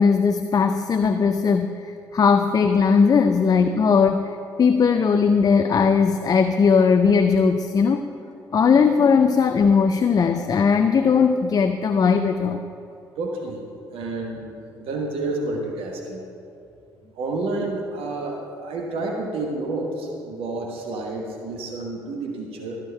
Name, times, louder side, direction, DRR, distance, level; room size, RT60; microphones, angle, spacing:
voice 1, 0.0-1.7 2.1-4.3 4.6-8.1 8.5-12.6, left 5 dB, 40° left, 8 dB, 0.5 m, -18 dB
voice 2, 13.2-13.6 13.9-16.2 17.1-22.8, right 2 dB, 65° right, 0 dB, 1.2 m, -30 dB
13.0 x 6.5 x 5.6 m, 2.5 s
hypercardioid pair, 45°, 10 cm